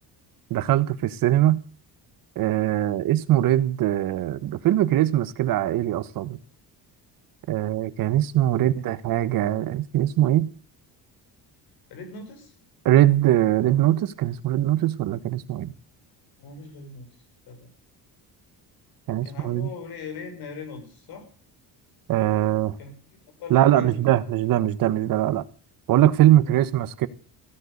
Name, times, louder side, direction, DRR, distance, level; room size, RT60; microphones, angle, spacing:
voice 1, 0.5-1.6 2.4-6.4 7.5-10.5 12.8-15.7 19.1-19.7 22.1-22.8 23.5-25.4 25.9-27.1, right 13 dB, 55° right, 1.3 m, -21 dB
voice 2, 8.5-8.9 11.9-12.5 16.4-17.2 17.5-17.7 19.2-21.3 22.8-24.2 26.2-26.7, left 4 dB, 65° left, 6.6 m, -40 dB
16.0 x 10.5 x 8.4 m
cardioid pair, 170°, 40 cm